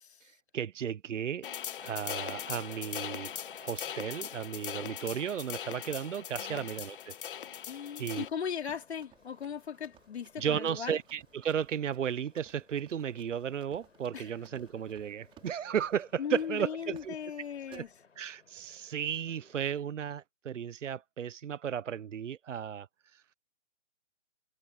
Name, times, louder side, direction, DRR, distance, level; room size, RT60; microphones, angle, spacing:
voice 1, 0.2-1.5 1.8-7.1 8.0-8.2 10.4-17.1 17.7-17.8 18.2-23.2, right 8 dB, 80° right, 0.8 m, -34 dB
sound 1, 1.4-8.3, left 9 dB, 45° left, 1.2 m, -40 dB
sound 2, 1.8-19.8, left 5 dB, 80° left, 4.6 m, -60 dB
voice 2, 7.6-11.0 14.1-14.4 16.2-17.9, left 7 dB, 60° left, 4.1 m, -38 dB
Run, 8.1-16.1 16.4-16.7 17.0-17.3 17.7-17.9, right 12 dB, 15° right, 5.4 m, -61 dB
hypercardioid pair, 155°, 37 cm